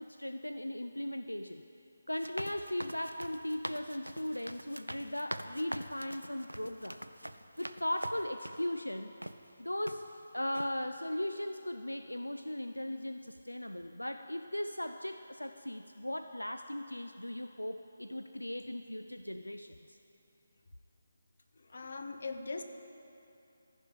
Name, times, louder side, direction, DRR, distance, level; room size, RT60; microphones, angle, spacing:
voice 1, 0.0-1.7 2.1-7.0 7.6-9.1 9.6-20.0, left 1 dB, 80° left, 8 dB, 0.3 m, -38 dB
sound 1, 2.1-8.7 9.2-9.4 9.9-10.2 10.5-10.7, equal, 85° right, 0.4 m, -44 dB
voice 2, 21.5-22.6, left 3 dB, 50° left, 7 dB, 0.7 m, -40 dB
14.0 x 5.4 x 5.1 m, 2.8 s
figure-of-eight pair, 150°, 0 cm